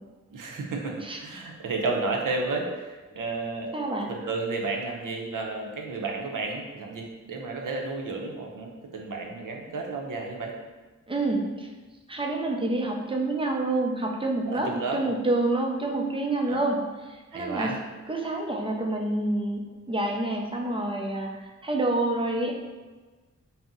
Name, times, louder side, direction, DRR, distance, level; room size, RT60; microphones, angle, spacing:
voice 1, 0.3-3.7 4.1-10.5 14.5-15.1 16.5-16.7 17.3-17.8, right 3 dB, 85° right, 1 dB, 0.5 m, -32 dB
voice 2, 3.7-4.1 11.1-11.7 12.1-17.7 18.1-21.3 21.6-22.5, right 2 dB, 15° right, 1 dB, 0.4 m, -28 dB
2.6 x 2.0 x 3.6 m, 1.3 s
wide cardioid pair, 70°, 32 cm